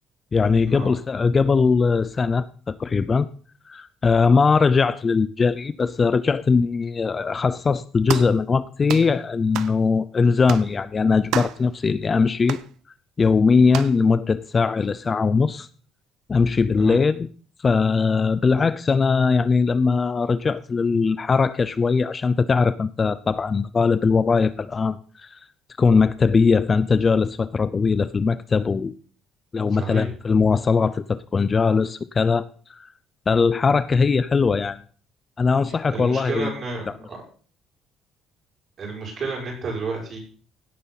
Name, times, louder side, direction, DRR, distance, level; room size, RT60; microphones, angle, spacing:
voice 1, 0.3-3.3 3.7-12.6 13.2-15.7 16.3-17.3 17.6-25.4 25.8-28.9 29.5-32.9 33.3-34.8 35.4-36.5, left 5 dB, 25° left, 15 dB, 0.5 m, -20 dB
sound 1, 8.1-8.4 8.9-9.1 9.5-9.8 10.5-10.7 11.3-11.6 12.5-12.7 13.7-14.0, right 12 dB, 80° right, 0.8 m, -30 dB
voice 2, 29.7-30.1 35.7-37.2 38.8-40.2, right 3 dB, 40° right, -2 dB, 6.5 m, -31 dB
17.0 x 9.5 x 4.1 m, 0.43 s
cardioid pair, 155°, 0 cm